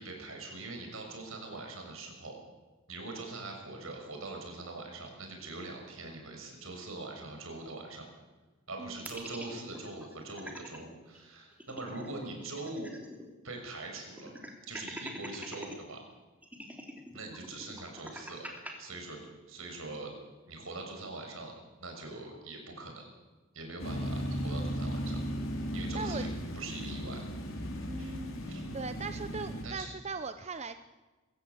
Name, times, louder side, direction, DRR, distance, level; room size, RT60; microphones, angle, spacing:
voice 1, 0.0-2.4 2.9-8.1 8.7-12.9 13.4-14.3 14.7-16.0 17.1-18.5 18.8-19.2 19.5-20.1 20.5-21.5 21.8-23.1 23.5-25.2 25.7-26.3 26.5-27.2 28.0-28.1 28.5-28.6 29.6-29.9, right 2 dB, 75° right, 2 dB, 6.3 m, -42 dB
voice 2, 8.8-9.1 25.9-26.3 27.9-28.4 28.7-30.8, right 4 dB, 30° right, 10 dB, 0.8 m, -39 dB
sound 1, 9.0-10.8 11.1-11.2 11.5-13.3 13.6-13.7 14.2-15.8 16.4-18.7, equal, 5° right, 3.1 m, -44 dB
sound 2, 23.8-29.7, equal, 70° left, 4.2 m, -36 dB
24.0 x 15.5 x 8.3 m, 1.2 s
head